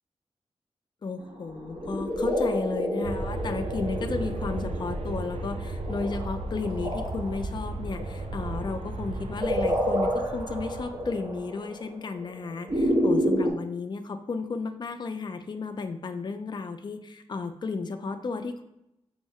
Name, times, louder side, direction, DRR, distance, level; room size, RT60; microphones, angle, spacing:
voice 1, 1.0-18.6, left 4 dB, 40° left, 7 dB, 0.3 m, -33 dB
sound 1, 1.5-13.5, equal, 40° right, 0.9 m, -30 dB
Aircraft, 3.0-11.4, right 2 dB, 70° right, 0.4 m, -35 dB
5.3 x 2.1 x 3.4 m, 0.85 s
wide cardioid pair, 85°, 11 cm